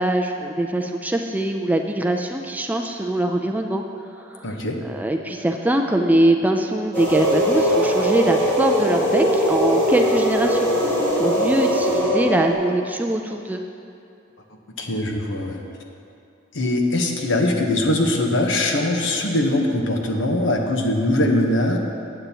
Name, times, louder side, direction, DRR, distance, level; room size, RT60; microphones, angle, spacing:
voice 1, 0.0-3.8 4.2-4.5 4.8-10.7 11.2-13.6, right 1 dB, 10° right, 3 dB, 0.4 m, -22 dB
voice 2, 4.4-4.8 14.8-15.6 16.5-21.8, left 1 dB, 65° left, 2 dB, 1.1 m, -21 dB
sound 1, 6.9-12.5, equal, 10° left, 2.3 m, -20 dB
15.0 x 9.0 x 2.9 m, 2.6 s
head